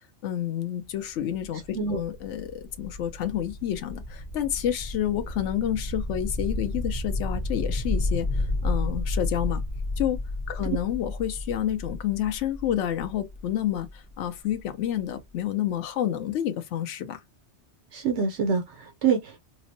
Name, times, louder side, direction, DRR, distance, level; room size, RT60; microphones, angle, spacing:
voice 1, 0.0-9.6 10.0-10.2 10.5-17.2, left 11 dB, 90° left, 0.9 m, -29 dB
sound 1, 0.8-14.6, left 2 dB, 50° left, 1.0 m, -32 dB
voice 2, 17.9-19.4, right 5 dB, 75° right, 1.0 m, -26 dB
4.9 x 2.0 x 2.6 m
omnidirectional pair, 1.2 m